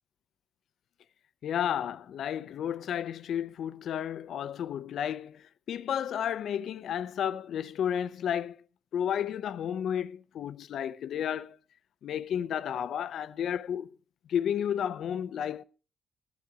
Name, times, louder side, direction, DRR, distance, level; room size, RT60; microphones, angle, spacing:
voice 1, 1.4-8.6 8.9-11.6 12.0-13.9 14.3-15.6, left 9 dB, 70° left, 0.6 m, -32 dB
13.5 x 9.4 x 4.7 m
cardioid pair, 90°, 0 cm